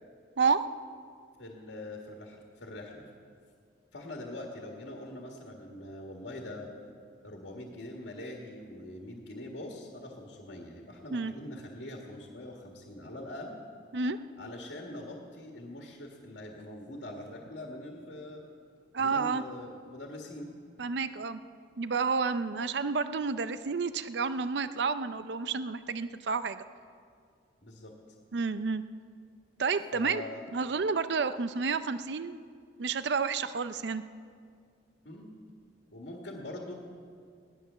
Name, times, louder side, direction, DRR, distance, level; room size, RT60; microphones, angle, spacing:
voice 1, 1.4-3.1 3.9-6.7 7.2-13.5 14.4-18.4 19.0-20.5 27.6-27.9 29.9-30.4 35.0-35.3 35.9-36.7, left 1 dB, 75° left, 0 dB, 1.8 m, -43 dB
voice 2, 18.9-19.4 20.8-21.4 21.8-26.6 28.3-28.8 29.6-30.2 30.5-32.4 32.8-34.0, right 5 dB, 70° right, 12 dB, 0.5 m, -30 dB
17.0 x 11.5 x 6.9 m, 2.2 s
head